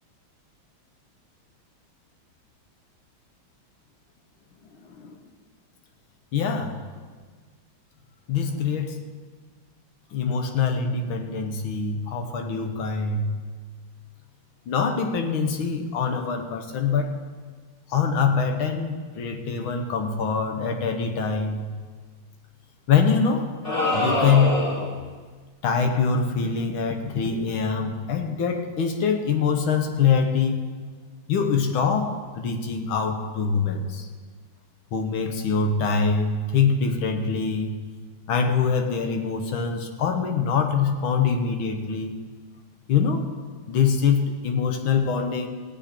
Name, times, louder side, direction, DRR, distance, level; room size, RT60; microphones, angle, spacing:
voice 1, 6.3-6.8 8.3-9.0 10.1-13.3 14.7-17.1 17.9-21.7 22.9-23.5 23.9-24.6 25.6-30.6 31.3-34.1 34.9-37.7 38.3-42.1 42.9-43.2 43.7-45.5, left 5 dB, 80° left, 5 dB, 1.9 m, -24 dB
sound 1, 23.6-25.0, left 1 dB, 20° left, 1.3 m, -24 dB
17.0 x 8.1 x 4.4 m, 1.5 s
omnidirectional pair, 2.2 m